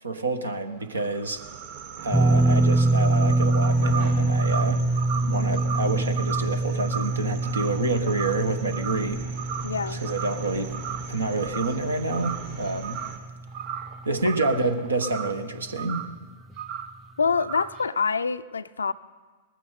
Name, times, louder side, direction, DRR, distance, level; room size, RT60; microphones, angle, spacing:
voice 1, 0.0-1.4 2.0-4.8 5.2-9.2 9.9-10.8 11.1-13.0 14.0-16.1, right 2 dB, 75° right, 9 dB, 1.3 m, -28 dB
sound 1, 0.8-8.5 8.7-9.1 9.4-10.5 10.7-11.1 11.4-11.8 12.1-13.2 13.5-15.4 15.8-16.1 16.6-16.9 17.4-17.8, right 8 dB, 35° right, 0.9 m, -36 dB
sound 2, 1.3-13.2, right 6 dB, 55° right, 3.5 m, -42 dB
sound 3, 2.1-14.4 14.6-14.9 16.5-16.6, right 2 dB, 5° left, 0.3 m, -25 dB
voice 2, 9.6-10.0 17.2-18.9, left 5 dB, 70° left, 14 dB, 0.5 m, -26 dB
20.0 x 14.5 x 4.0 m, 1.4 s
figure-of-eight pair, 100°, 0 cm